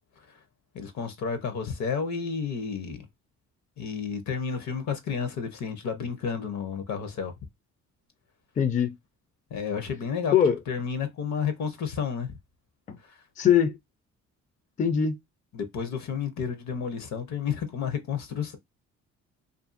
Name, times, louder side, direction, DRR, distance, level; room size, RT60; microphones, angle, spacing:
voice 1, 0.7-3.1 3.8-7.3 9.5-10.4 10.7-12.3 13.1-13.2 15.5-18.6, left 6 dB, 65° left, 0.8 m, -31 dB
voice 2, 8.6-8.9 10.3-10.6 12.9-13.0 13.4-13.8 14.8-15.2, left 8 dB, 25° left, 0.4 m, -21 dB
2.6 x 2.5 x 2.5 m
cardioid pair, 90°, 30 cm